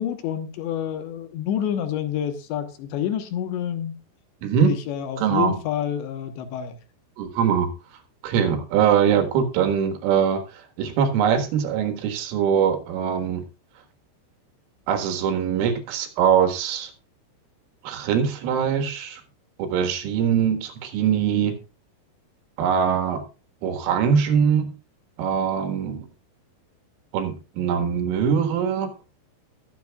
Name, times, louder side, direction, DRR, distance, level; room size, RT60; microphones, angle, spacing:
voice 1, 0.0-4.0 4.6-6.8, left 10 dB, 75° left, 8 dB, 3.1 m, -28 dB
voice 2, 5.2-5.5 7.2-7.7 8.2-13.4 14.9-16.9 17.8-19.2 19.6-21.6 22.6-23.2 23.6-24.7 25.2-26.1 27.1-28.9, right 7 dB, 90° right, 6 dB, 4.2 m, -22 dB
21.0 x 7.7 x 2.3 m, 0.32 s
omnidirectional pair, 5.6 m